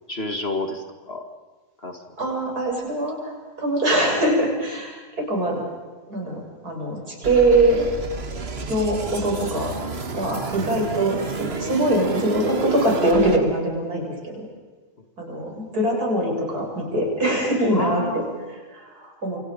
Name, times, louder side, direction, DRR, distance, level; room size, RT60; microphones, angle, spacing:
voice 1, 0.1-1.2 1.8-2.0 17.7-18.3, left 2 dB, 40° left, 5 dB, 2.2 m, -29 dB
voice 2, 2.2-3.3 3.6-5.6 6.1-7.8 8.7-9.8 10.1-14.5 15.2-18.2 18.5-19.4, right 1 dB, 70° right, -1 dB, 7.5 m, -23 dB
sound 1, 7.2-13.4, right 4 dB, 40° right, 1.7 m, -31 dB
28.5 x 26.0 x 5.3 m, 1.3 s
omnidirectional pair, 1.7 m